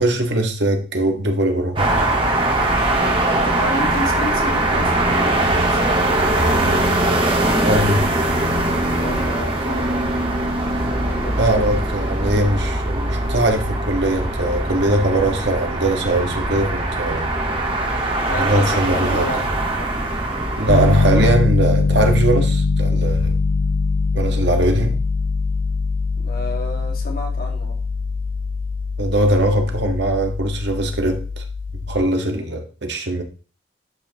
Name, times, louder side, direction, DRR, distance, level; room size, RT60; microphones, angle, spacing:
voice 1, 0.0-2.1 7.6-8.1 11.4-17.3 18.3-19.4 20.6-23.3 24.1-25.0 29.0-31.4 31.9-33.2, right 1 dB, 65° right, 1.4 m, -21 dB
sound 1, 1.8-21.3, right 1 dB, 25° right, 1.5 m, -21 dB
voice 2, 2.9-6.7 8.8-10.6 10.8-11.7 18.3-19.9 26.2-27.8 32.3-32.6, left 1 dB, 50° left, 2.0 m, -31 dB
Piano, 20.7-32.0, left 3 dB, 80° left, 1.0 m, -22 dB
11.5 x 5.8 x 2.9 m
head